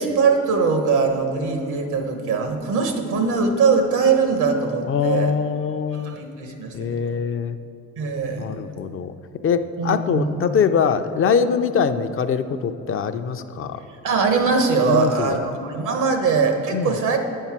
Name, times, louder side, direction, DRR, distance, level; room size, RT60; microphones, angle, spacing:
voice 1, 0.0-5.3 5.9-7.0 8.0-8.6 9.8-10.4 14.0-17.2, right 4 dB, 85° right, 5 dB, 1.1 m, -21 dB
voice 2, 4.9-6.2 6.7-7.6 8.4-9.1 9.4-13.8 14.9-15.4 16.7-16.9, left 6 dB, 45° left, 9 dB, 0.4 m, -23 dB
8.9 x 5.5 x 5.9 m, 2.9 s
cardioid pair, 90°, 30 cm